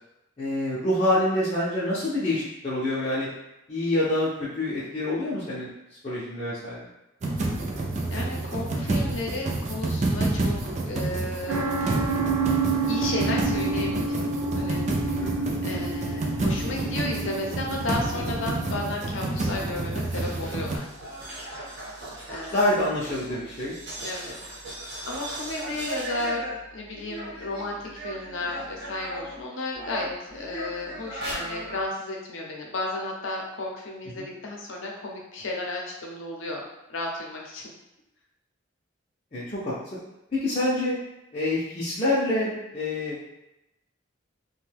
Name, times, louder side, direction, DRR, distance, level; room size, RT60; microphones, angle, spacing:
voice 1, 0.4-3.3 3.7-5.7 6.0-6.8 15.2-15.6 22.5-23.7 34.1-34.3 39.3-40.0 40.3-41.0 41.3-43.2, left 1 dB, 30° left, -9 dB, 0.5 m, -26 dB
sound 1, 7.2-20.8, right 2 dB, 35° right, 0.3 m, -29 dB
voice 2, 8.1-12.0 12.4-14.8 15.6-20.9 22.3-22.6 24.0-24.4 25.1-26.4 26.7-36.6 36.9-37.7, left 2 dB, 80° left, -1 dB, 0.6 m, -33 dB
sound 2, 11.5-18.9, right 4 dB, 90° right, 0.5 m, -29 dB
sound 3, 20.1-29.4 29.7-31.8, right 1 dB, 60° right, 0.9 m, -38 dB
2.6 x 2.2 x 3.3 m, 0.90 s
head